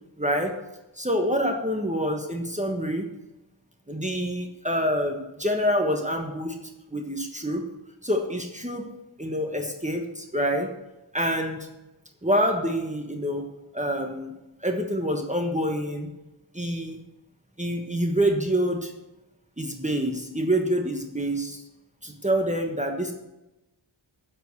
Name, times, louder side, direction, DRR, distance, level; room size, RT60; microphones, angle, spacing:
voice 1, 0.2-0.5 0.9-3.1 3.9-6.5 6.9-7.6 8.0-8.9 9.2-10.7 11.1-11.7 12.2-13.4 13.7-14.3 14.6-16.1 16.5-17.0 17.6-18.9 19.6-21.6 22.0-23.1, equal, 15° right, 3 dB, 1.3 m, -26 dB
7.7 x 7.6 x 6.8 m, 0.97 s
wide cardioid pair, 45°, 47 cm